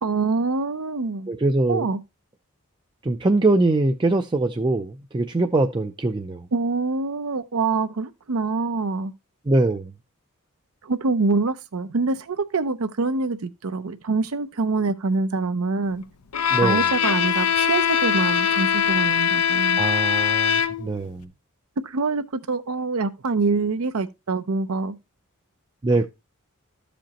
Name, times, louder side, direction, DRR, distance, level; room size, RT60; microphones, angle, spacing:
voice 1, 0.0-1.3 1.7-2.0 6.5-9.1 10.8-16.0 16.5-19.8 21.8-25.0, right 3 dB, 80° right, 0.6 m, -25 dB
voice 2, 1.3-1.9 3.0-6.5 9.5-9.9 16.5-16.8 19.8-21.3 25.8-26.1, right 2 dB, 20° right, 0.4 m, -22 dB
Bowed string instrument, 16.3-21.0, left 8 dB, 90° left, 0.7 m, -21 dB
13.0 x 5.1 x 2.9 m
head